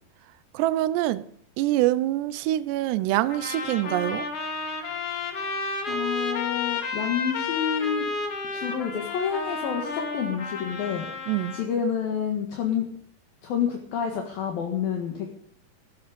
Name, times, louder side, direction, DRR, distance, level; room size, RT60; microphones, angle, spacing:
voice 1, 0.5-1.2 1.6-4.3 11.3-11.6, right 15 dB, 80° right, 2.8 m, -25 dB
sound 1, 3.3-11.7, left 4 dB, 45° left, 2.3 m, -31 dB
voice 2, 5.9-8.1 8.5-11.1 11.5-12.9 13.4-15.3, left 7 dB, 60° left, 3.3 m, -28 dB
15.5 x 15.0 x 5.2 m
omnidirectional pair, 5.1 m